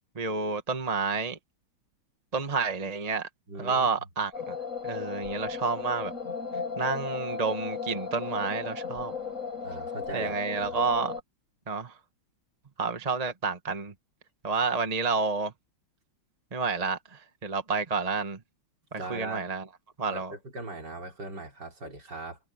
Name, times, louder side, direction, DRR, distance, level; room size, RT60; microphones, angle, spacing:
voice 1, 0.1-1.4 2.3-3.3 3.6-4.6 4.8-6.1 6.8-9.1 10.1-11.1 11.7-11.9 12.8-13.9 14.4-15.5 16.5-18.4 18.9-19.6 20.0-20.3, right 4 dB, 20° right, 1.1 m, -30 dB
voice 2, 3.5-3.9 9.6-10.8 18.9-19.5 20.1-22.4, right 2 dB, 50° right, 5.0 m, -39 dB
sound 1, 4.3-11.2, left 5 dB, 35° left, 6.4 m, -35 dB
omnidirectional pair, 2.4 m